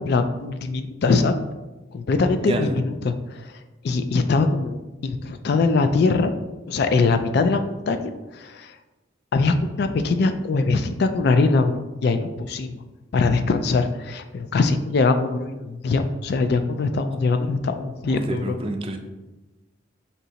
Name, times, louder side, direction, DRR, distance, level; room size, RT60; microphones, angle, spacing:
voice 1, 0.0-1.4 1.9-3.5 3.8-6.3 6.7-8.7 9.3-12.8 13.1-18.6, left 3 dB, 55° left, 8 dB, 0.3 m, -22 dB
voice 2, 2.4-2.8 18.1-19.0, right 2 dB, 30° right, 5 dB, 0.4 m, -28 dB
4.4 x 2.8 x 3.9 m, 1.1 s
head